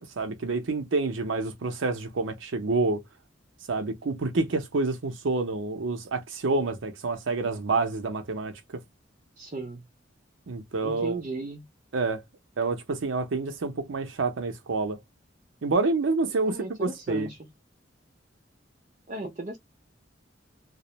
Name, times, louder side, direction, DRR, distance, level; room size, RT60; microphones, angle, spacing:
voice 1, 0.2-3.0 3.7-8.6 10.5-11.2 11.9-12.2 12.6-15.0 15.6-17.3, right 3 dB, 85° right, 0.6 m, -28 dB
voice 2, 9.4-9.8 10.8-11.7 16.4-17.5 19.1-19.6, right 3 dB, 40° right, 0.4 m, -36 dB
2.3 x 2.1 x 2.9 m
head